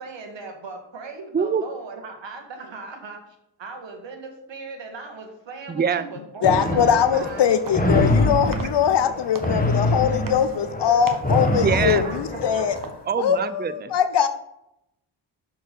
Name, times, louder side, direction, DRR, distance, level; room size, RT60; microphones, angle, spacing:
voice 1, 0.0-8.6 11.7-12.6, right 3 dB, 70° right, 4 dB, 1.6 m, -39 dB
voice 2, 5.7-6.0 11.5-12.0 13.1-13.9, right 6 dB, 20° right, 13 dB, 0.6 m, -24 dB
voice 3, 6.4-12.7 13.2-14.3, left 8 dB, 65° left, 11 dB, 0.7 m, -21 dB
sound 1, 6.4-12.9, left 1 dB, 20° left, 1.6 m, -24 dB
sound 2, 7.3-13.4, right 3 dB, 45° right, 1.1 m, -40 dB
6.3 x 4.6 x 6.6 m, 0.82 s
cardioid pair, 50°, 46 cm